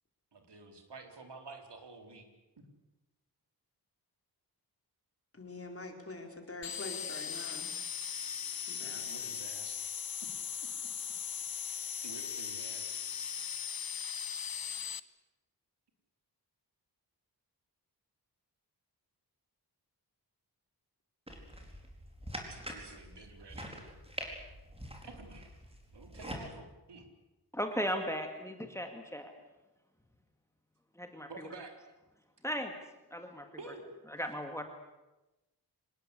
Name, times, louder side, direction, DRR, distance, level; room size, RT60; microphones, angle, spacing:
voice 1, 0.3-2.3 9.0-9.8 10.6-10.9 11.7-13.0 22.5-23.7 25.0-25.5 25.9-27.1 31.3-31.8 33.6-33.8, right 3 dB, 85° right, 4 dB, 4.0 m, -50 dB
voice 2, 5.3-7.7 8.7-9.3, left 2 dB, 35° left, 3 dB, 4.4 m, -45 dB
sound 1, 6.6-15.0, left 7 dB, 60° left, 0.9 m, -38 dB
sound 2, 21.3-26.5, equal, 15° right, 4.6 m, -45 dB
voice 3, 27.5-29.3 31.0-31.3 32.4-32.8 33.1-33.5 34.1-34.6, equal, 5° left, 5 dB, 2.2 m, -36 dB
25.5 x 20.0 x 8.4 m, 1.0 s
wide cardioid pair, 115°, 40 cm